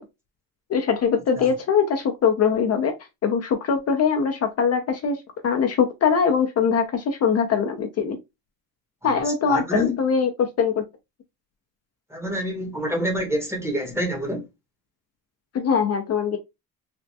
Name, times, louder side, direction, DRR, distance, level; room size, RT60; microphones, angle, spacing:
voice 1, 0.7-3.0 3.2-5.2 5.4-8.2 9.0-10.3 10.6-10.8 15.5-16.4, left 6 dB, 45° left, 0.5 m, -22 dB
voice 2, 9.0-10.0 12.1-14.5, equal, 5° right, 0.9 m, -27 dB
3.4 x 2.0 x 2.7 m
cardioid pair, 135°, 35 cm